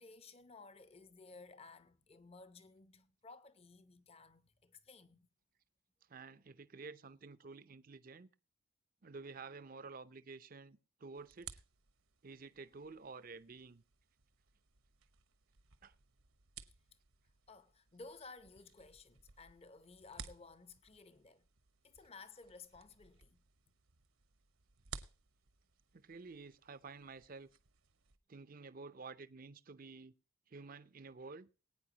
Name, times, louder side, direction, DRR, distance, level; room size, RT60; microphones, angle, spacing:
voice 1, 0.0-5.3 17.5-21.5 21.8-23.4, left 3 dB, 30° left, 0.7 m, -56 dB
voice 2, 6.1-8.3 9.0-11.6 12.2-13.8 15.8-15.9 25.9-27.5 28.3-30.1 30.5-31.5, right 4 dB, 40° right, 0.6 m, -51 dB
sound 1, 11.1-28.2, right 6 dB, 70° right, 1.1 m, -58 dB
20.0 x 9.1 x 2.9 m
head